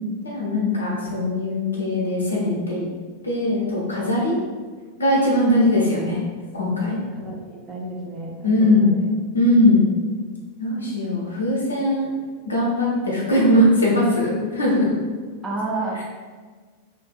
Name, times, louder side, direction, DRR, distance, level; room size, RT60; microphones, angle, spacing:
voice 1, 0.2-2.8 3.2-4.4 5.0-6.2 6.5-7.0 8.4-8.9 9.3-9.9 10.6-12.1 12.5-14.9, left 1 dB, 75° left, -4 dB, 0.7 m, -20 dB
voice 2, 0.8-1.4 7.1-9.1 15.4-16.0, right 2 dB, 20° right, -2 dB, 0.5 m, -31 dB
2.6 x 2.5 x 2.3 m, 1.5 s
figure-of-eight pair, 90°, 0 cm